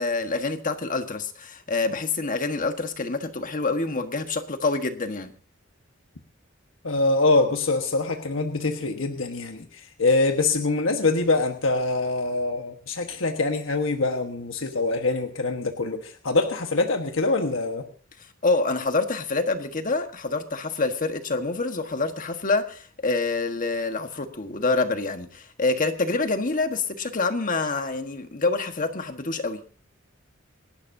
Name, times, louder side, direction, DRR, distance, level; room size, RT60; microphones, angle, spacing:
voice 1, 0.0-5.3 18.4-29.6, left 3 dB, 40° left, 1.4 m, -26 dB
voice 2, 6.8-17.9, left 3 dB, 75° left, 1.4 m, -24 dB
27.5 x 12.0 x 2.7 m
head